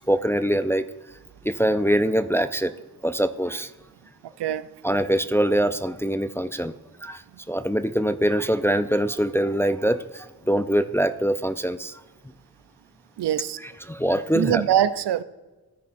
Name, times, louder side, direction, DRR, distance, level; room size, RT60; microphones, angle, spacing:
voice 1, 0.1-0.9 1.4-2.7 3.0-3.7 4.8-6.7 7.0-7.2 7.5-12.0 13.6-14.6, equal, 5° left, 11 dB, 0.4 m, -23 dB
voice 2, 13.2-13.6 14.3-15.2, right 10 dB, 75° right, 14 dB, 0.6 m, -23 dB
16.0 x 9.5 x 2.6 m, 1.2 s
cardioid pair, 50°, 41 cm